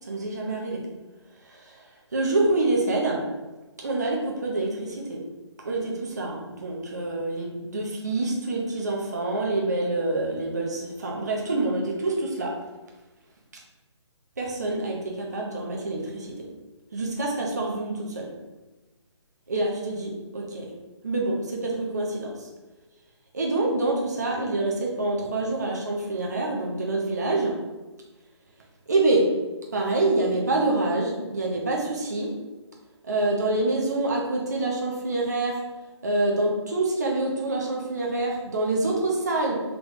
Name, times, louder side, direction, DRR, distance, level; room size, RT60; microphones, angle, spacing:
voice 1, 0.1-0.8 1.4-1.8 2.1-3.2 3.8-5.2 5.6-12.6 14.4-16.5 16.9-18.3 19.5-20.7 21.0-22.5 23.3-27.6 28.9-29.3 29.7-32.3 33.0-35.6 36.0-39.6, right 2 dB, 35° right, -1 dB, 0.5 m, -26 dB
3.4 x 2.1 x 3.8 m, 1.2 s
hypercardioid pair, 180°, 16 cm